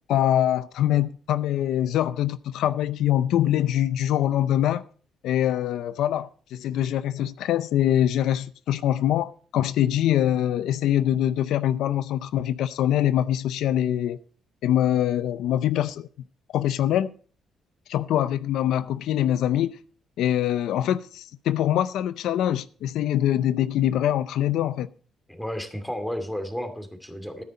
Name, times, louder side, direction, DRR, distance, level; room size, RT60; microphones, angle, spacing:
voice 1, 0.1-4.8 5.2-14.2 14.6-16.1 16.5-17.1 17.9-19.8 20.2-24.9, left 11 dB, 85° left, 0.5 m, -24 dB
voice 2, 25.3-27.4, equal, 5° left, 2.4 m, -32 dB
13.0 x 9.6 x 4.2 m
cardioid pair, 90°, 0 cm